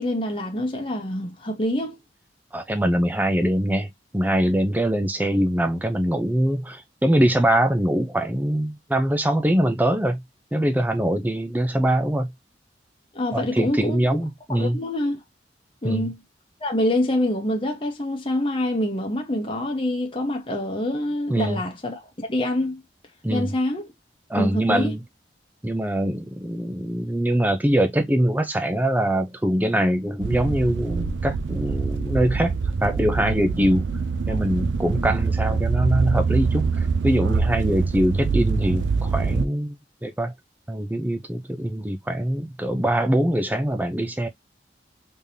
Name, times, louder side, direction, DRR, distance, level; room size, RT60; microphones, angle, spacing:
voice 1, 0.0-2.0 13.1-14.2 14.5-15.2 15.8-16.2 16.6-22.8 23.3-23.9 24.3-24.9 34.3-34.4, left 1 dB, 30° left, 0.9 m, -26 dB
voice 2, 2.5-10.2 10.5-12.3 13.3-14.8 15.8-16.1 21.3-21.6 23.2-23.5 24.3-25.0 25.6-32.5 32.8-33.8 34.3-40.3 40.7-44.3, right 1 dB, 10° right, 0.5 m, -23 dB
sound 1, 30.2-39.4, right 4 dB, 85° right, 0.4 m, -24 dB
3.6 x 3.4 x 2.6 m
head